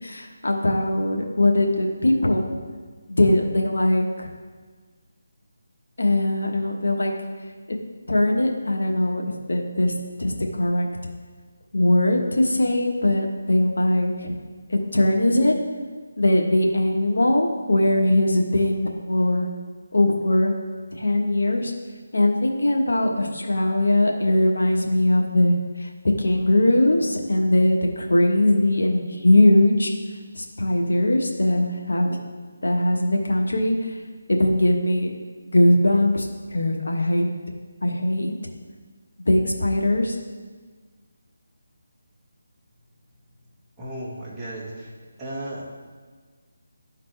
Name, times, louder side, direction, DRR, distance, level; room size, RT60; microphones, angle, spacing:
voice 1, 0.0-2.4 3.1-4.3 6.0-7.1 7.7-7.8 8.1-9.9 10.2-10.9 11.7-14.4 14.7-15.6 16.2-19.5 19.9-20.5 20.9-21.7 22.1-25.9 26.2-29.9 30.3-32.2 32.6-34.0 34.3-35.1 35.5-37.3 37.8-38.3 39.3-40.2, left 1 dB, 80° left, 1 dB, 1.2 m, -20 dB
voice 2, 43.8-44.9 45.2-45.7, right 1 dB, 10° right, -9 dB, 1.4 m, -34 dB
12.0 x 4.1 x 3.3 m, 1.5 s
figure-of-eight pair, 160°, 0 cm